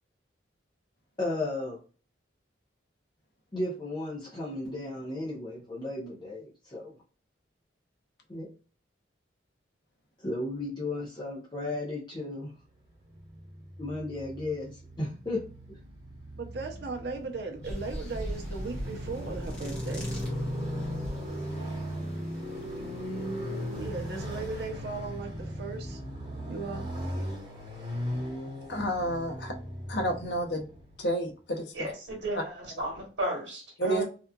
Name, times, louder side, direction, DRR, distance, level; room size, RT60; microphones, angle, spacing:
voice 1, 1.2-1.8 3.5-6.9 8.3-8.5 10.2-12.5 13.8-15.4 15.7-15.8, left 2 dB, 25° left, 0.6 m, -34 dB
Motorcycle, 12.9-31.1, equal, 25° right, 0.9 m, -37 dB
voice 2, 16.3-20.1 23.8-26.0 26.5-26.9, right 3 dB, 60° right, 0.6 m, -37 dB
sound 1, 17.6-24.7, equal, 5° left, 1.0 m, -42 dB
voice 3, 28.7-29.5 29.9-30.6 31.0-31.6 33.8-34.0, right 1 dB, 60° left, 0.7 m, -30 dB
voice 4, 31.7-34.0, right 1 dB, 75° right, 1.2 m, -34 dB
2.8 x 2.4 x 2.2 m
head